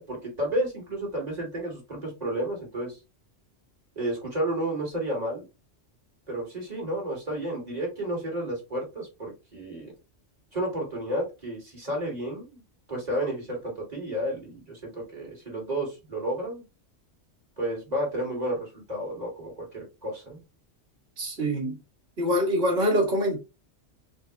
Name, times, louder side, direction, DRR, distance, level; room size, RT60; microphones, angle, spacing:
voice 1, 0.0-3.0 4.0-5.4 6.3-9.9 10.5-12.6 12.9-16.6 17.6-20.4, right 1 dB, 35° right, 2.3 m, -31 dB
voice 2, 21.2-21.8 22.2-23.4, equal, 60° right, 2.0 m, -24 dB
4.3 x 2.8 x 3.3 m
omnidirectional pair, 1.2 m